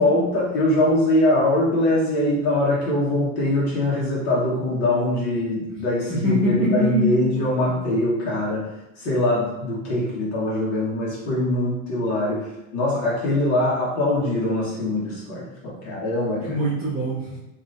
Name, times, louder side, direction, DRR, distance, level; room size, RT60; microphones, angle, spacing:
voice 1, 0.0-8.7 9.0-16.5, left 1 dB, 35° left, -5 dB, 1.3 m, -22 dB
voice 2, 6.1-7.2 16.4-17.4, equal, ahead, -16 dB, 1.1 m, -23 dB
3.1 x 2.9 x 2.6 m, 0.90 s
supercardioid pair, 140°, 42 cm